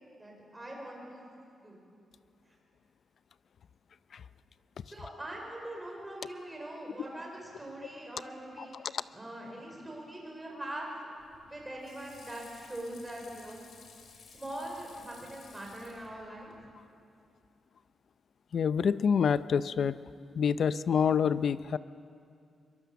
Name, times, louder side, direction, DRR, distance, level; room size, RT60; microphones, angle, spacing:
voice 1, 0.2-1.2 1.6-1.8 4.9-8.8 9.1-10.9 11.5-13.6 14.3-16.5, right 1 dB, 10° right, -1 dB, 4.9 m, -42 dB
Water / Sink (filling or washing), 11.2-16.7, left 5 dB, 80° left, 3.2 m, -55 dB
voice 2, 18.5-20.0 20.4-21.8, left 7 dB, 55° left, 15 dB, 0.5 m, -27 dB
23.0 x 22.5 x 7.0 m, 2.5 s
wide cardioid pair, 170°, 0 cm